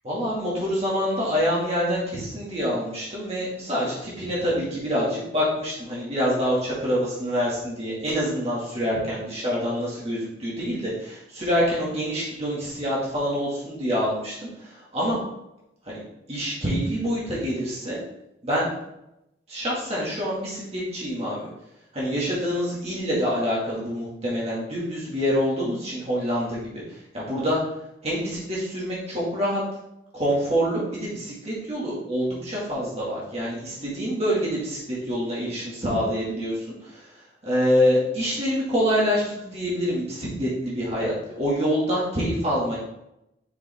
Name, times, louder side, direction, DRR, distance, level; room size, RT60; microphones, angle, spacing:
voice 1, 0.0-15.2 15.9-16.0 16.3-18.0 18.4-18.7 19.5-21.5 21.9-27.6 28.0-29.6 30.1-37.0 37.4-42.7, equal, 35° right, -7 dB, 2.0 m, -26 dB
6.7 x 5.3 x 3.5 m, 0.85 s
head